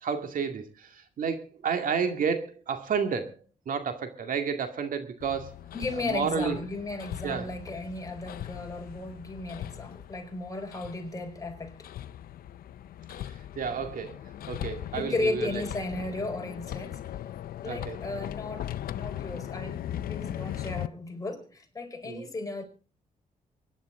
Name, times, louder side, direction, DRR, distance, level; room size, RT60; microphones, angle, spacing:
voice 1, 0.0-3.3 3.7-5.5 6.1-6.6 7.2-7.5 13.6-14.2 14.5-15.6 17.7-18.0 22.1-22.3, right 6 dB, 65° right, 2.2 m, -31 dB
Hammer, 5.2-20.9, left 12 dB, 80° left, 0.6 m, -39 dB
voice 2, 5.7-11.9 14.9-17.0 17.6-22.6, left 2 dB, 25° left, 4.7 m, -35 dB
24.5 x 11.0 x 3.8 m
cardioid pair, 95°, 15 cm